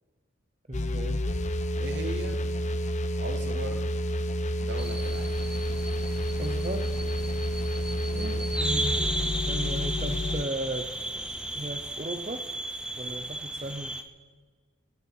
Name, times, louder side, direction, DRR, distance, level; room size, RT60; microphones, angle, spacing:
sound 1, 0.7-10.4, equal, 35° left, 0.7 m, -29 dB
voice 1, 0.7-1.3 2.4-2.6 6.4-6.9 8.6-9.0 9.5-10.9 11.5-12.4 13.0-14.0, right 1 dB, 35° right, 5 dB, 0.8 m, -35 dB
voice 2, 1.8-2.4 3.2-3.9 4.6-5.4 8.1-8.6, right 2 dB, 55° right, 6 dB, 1.8 m, -38 dB
sound 2, 4.8-14.0, right 1 dB, 5° right, 0.8 m, -34 dB
27.0 x 9.9 x 4.9 m, 1.5 s
head